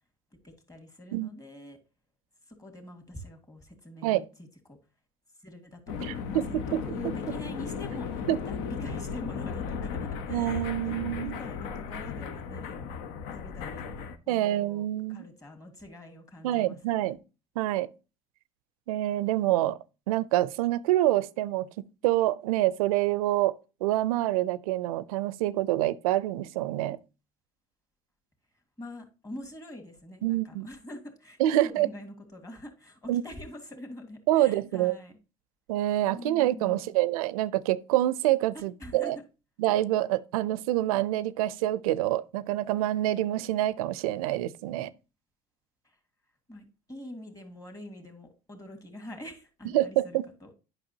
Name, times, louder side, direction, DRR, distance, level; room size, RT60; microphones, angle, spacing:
voice 1, 0.4-1.8 2.5-4.3 4.7-4.8 5.4-6.6 6.8-10.7 11.2-13.0 13.3-13.8 14.3-17.2 28.8-35.2 36.1-36.9 38.5-39.1 45.8-46.0 46.5-50.5, left 1 dB, 20° left, 2.1 m, -45 dB
sound 1, 5.9-14.2, left 6 dB, 75° left, 0.8 m, -35 dB
voice 2, 6.0-6.8 8.3-8.4 10.3-11.4 14.3-15.2 16.4-17.2 17.6-17.9 18.9-19.8 20.1-21.7 22.0-23.6 23.8-27.0 30.2-30.7 31.4-31.9 33.1-33.2 34.3-35.0 35.7-39.2 39.6-44.9 49.7-50.3, right 14 dB, 85° right, 0.5 m, -26 dB
8.9 x 5.7 x 2.7 m
hypercardioid pair, 75°, 18 cm